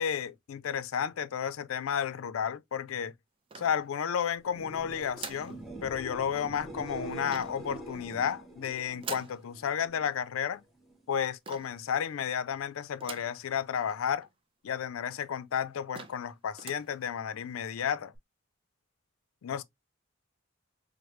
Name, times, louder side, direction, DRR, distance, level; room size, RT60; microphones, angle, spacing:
voice 1, 0.0-3.1 3.6-10.6 11.1-14.3 14.6-18.1 19.4-19.6, left 8 dB, 80° left, 0.4 m, -32 dB
sound 1, 3.5-4.2 5.1-5.6 7.2-7.7 9.0-9.4 11.4-11.8 13.0-13.4 13.9-14.0 14.2-14.3 15.1-15.2 15.6-15.7 15.9-16.3 16.5-16.9, right 5 dB, 25° right, 0.4 m, -43 dB
sound 2, 4.4-10.2 10.5-11.1 18.1-18.2, right 2 dB, ahead, 0.8 m, -45 dB
4.8 x 2.0 x 3.0 m
head